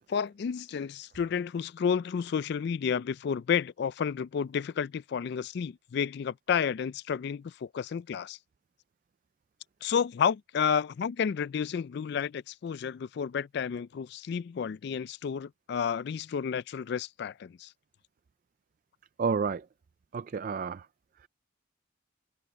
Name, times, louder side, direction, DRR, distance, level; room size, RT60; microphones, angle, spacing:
voice 1, 0.1-8.4 9.8-17.7, left 7 dB, 55° left, 0.3 m, -31 dB
voice 2, 19.2-19.7 20.1-20.9, right 5 dB, 45° right, 0.3 m, -30 dB
head